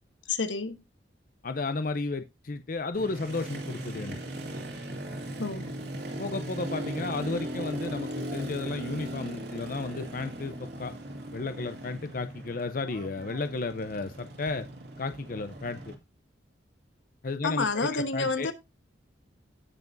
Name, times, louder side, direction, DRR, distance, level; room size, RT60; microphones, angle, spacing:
voice 1, 0.3-0.8 5.4-5.7 17.4-18.5, left 3 dB, 80° left, 1.3 m, -29 dB
voice 2, 1.4-4.2 6.2-10.9 11.3-14.7 15.0-15.9 17.2-18.5, left 3 dB, 50° left, 0.6 m, -33 dB
Motorcycle, 2.9-15.9, right 1 dB, 60° right, 2.1 m, -38 dB
17.5 x 6.0 x 2.6 m
head